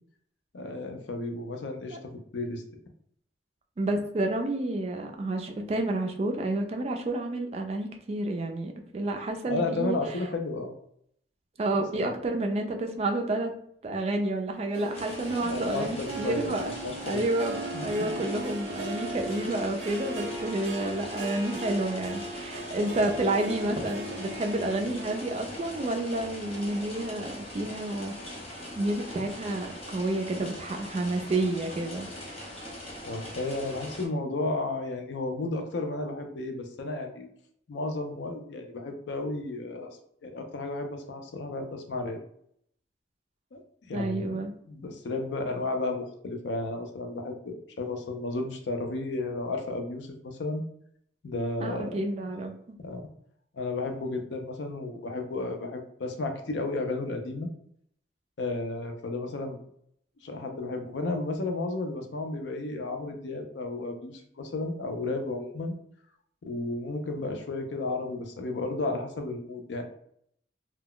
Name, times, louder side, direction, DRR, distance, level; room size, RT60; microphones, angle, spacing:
voice 1, 0.5-2.6 9.5-10.7 12.0-12.1 15.4-17.2 17.7-18.1 33.1-37.3 37.7-42.2 43.5-43.6 43.9-44.4 44.7-50.6 51.2-51.9 52.8-53.1 53.5-57.5 58.4-59.6 60.2-65.7 66.4-69.8, left 2 dB, 70° left, 5 dB, 0.5 m, -33 dB
voice 2, 3.8-10.0 11.6-13.5 13.8-16.7 17.1-28.1 28.8-32.1 43.9-44.5 51.6-52.5, right 2 dB, 35° right, 3 dB, 0.3 m, -30 dB
Harp, 14.7-27.5 27.9-28.3 28.8-28.9, right 2 dB, 85° right, 0.6 m, -39 dB
sound 1, 14.9-34.1, left 1 dB, 30° left, 0.6 m, -41 dB
2.2 x 2.0 x 3.7 m, 0.69 s
head